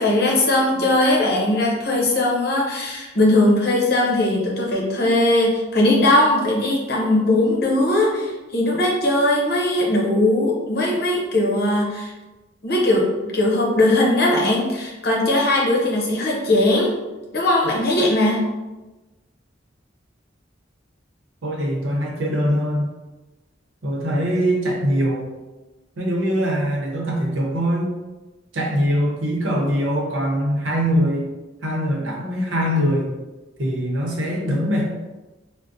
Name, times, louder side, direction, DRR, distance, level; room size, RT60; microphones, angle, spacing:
voice 1, 0.0-12.1 12.6-16.9 17.3-18.5, left 1 dB, 55° left, -2 dB, 0.7 m, -19 dB
voice 2, 21.4-22.9 23.8-25.4 26.0-27.9 28.5-31.3 31.6-33.2 33.6-34.9, equal, 90° right, -1 dB, 0.7 m, -22 dB
3.5 x 2.1 x 2.6 m, 1.1 s
head